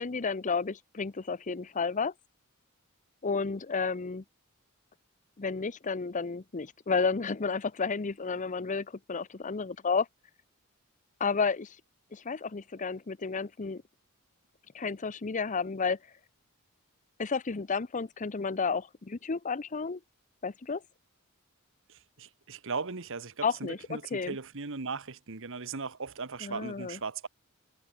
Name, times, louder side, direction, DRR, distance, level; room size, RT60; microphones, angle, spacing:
voice 1, 0.0-2.1 3.2-4.2 5.4-10.1 11.2-11.8 12.1-13.8 14.7-16.0 17.2-20.0 20.4-20.8 23.4-24.4 26.4-27.0, left 5 dB, 35° left, 0.7 m, -31 dB
voice 2, 21.9-27.3, right 4 dB, 65° right, 1.4 m, -38 dB
head